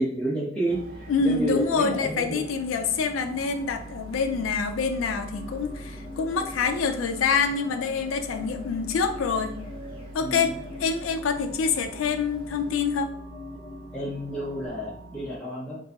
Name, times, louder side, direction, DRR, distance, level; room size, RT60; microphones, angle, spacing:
voice 1, 0.0-2.4 10.2-10.5 13.9-15.8, right 1 dB, 5° left, -10 dB, 0.8 m, -30 dB
sound 1, 0.6-13.0, right 1 dB, 30° right, 1.0 m, -48 dB
sound 2, 0.7-15.4, right 1 dB, 45° right, 0.4 m, -44 dB
voice 2, 1.1-9.6 10.1-13.1, left 5 dB, 90° left, 6 dB, 0.4 m, -26 dB
sound 3, 5.3-14.7, left 3 dB, 25° left, 0.4 m, -44 dB
3.9 x 2.6 x 2.3 m, 0.71 s
head